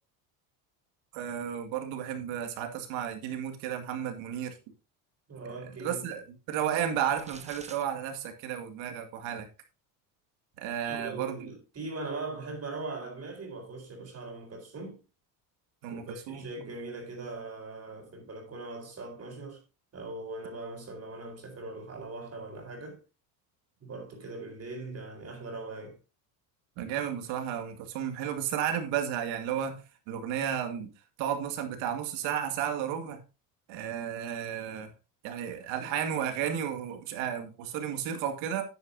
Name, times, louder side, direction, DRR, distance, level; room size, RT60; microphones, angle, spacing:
voice 1, 1.1-4.6 5.8-9.5 10.6-11.5 15.8-16.7 26.8-30.9 31.2-33.2 33.7-34.9 35.2-38.6, right 9 dB, 70° right, 2.3 m, -33 dB
voice 2, 5.3-6.0 10.8-15.0 15.9-19.6 19.9-23.0 23.8-26.0, right 3 dB, 30° right, 4.2 m, -40 dB
sound 1, 7.1-7.8, right 3 dB, 15° right, 1.2 m, -48 dB
9.6 x 9.5 x 2.7 m
supercardioid pair, 105°, 47 cm